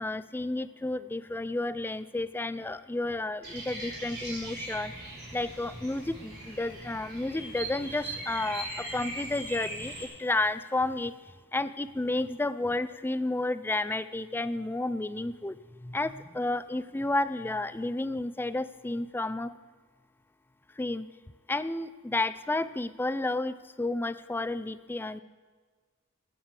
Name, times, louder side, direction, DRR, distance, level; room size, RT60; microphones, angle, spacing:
voice 1, 0.0-4.9 5.3-11.1 11.5-19.5 20.8-21.1 21.5-25.2, left 2 dB, 10° left, 15 dB, 0.3 m, -31 dB
Bird vocalization bird call bird song, 3.4-10.1, right 1 dB, 50° right, 4.2 m, -40 dB
9.5 x 9.1 x 7.4 m, 1.5 s
head